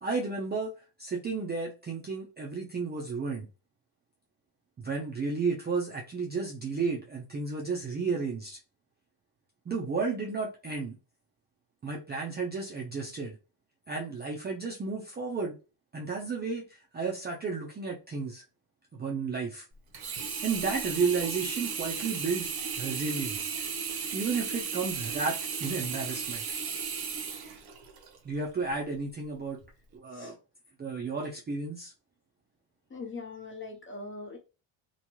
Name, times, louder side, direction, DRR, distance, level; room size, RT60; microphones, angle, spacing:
voice 1, 0.0-0.7 1.0-3.5 4.8-8.6 9.7-11.0 11.8-13.4 13.9-15.6 15.9-16.7 16.9-18.4 18.9-19.6 20.2-22.5 22.8-23.5 24.1-26.4 28.2-29.6 29.9-30.3 30.8-31.9, right 4 dB, 20° right, 0.4 m, -32 dB
Sink (filling or washing), 19.9-28.2 28.7-28.8, right 6 dB, 50° right, 0.9 m, -35 dB
voice 2, 32.9-34.4, left 3 dB, 25° left, 0.7 m, -41 dB
2.6 x 2.3 x 3.0 m
cardioid pair, 115°, 49 cm